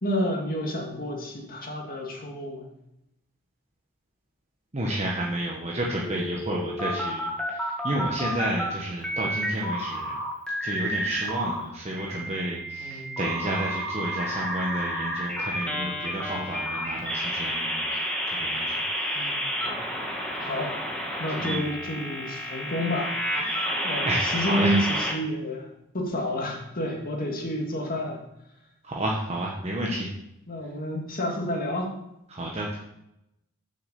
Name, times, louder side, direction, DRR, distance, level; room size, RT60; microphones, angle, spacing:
voice 1, 0.0-2.6 12.8-13.2 19.1-19.7 20.4-20.7 21.2-25.7 25.9-28.2 30.5-31.9, equal, 40° left, 0 dB, 2.1 m, -30 dB
voice 2, 4.7-10.1 10.6-18.7 19.0-19.3 21.4-21.7 24.0-24.8 28.8-30.1 32.3-32.8, right 1 dB, 30° right, -3 dB, 1.2 m, -31 dB
sound 1, 6.0-8.7 9.0-11.6 12.0-25.1, equal, 5° left, 1.8 m, -30 dB
6.8 x 6.5 x 7.1 m, 0.85 s
head